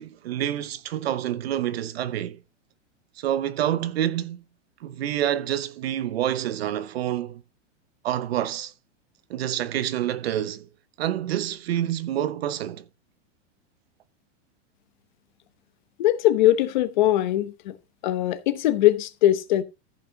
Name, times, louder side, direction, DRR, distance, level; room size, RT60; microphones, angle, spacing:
voice 1, 0.0-2.4 3.2-4.4 4.8-7.4 8.0-8.7 9.3-10.7 11.0-12.8, right 11 dB, 55° right, 0.8 m, -27 dB
voice 2, 16.0-17.8 18.0-19.6, left 13 dB, 40° left, 1.0 m, -21 dB
14.5 x 5.8 x 3.7 m
supercardioid pair, 180°, 37 cm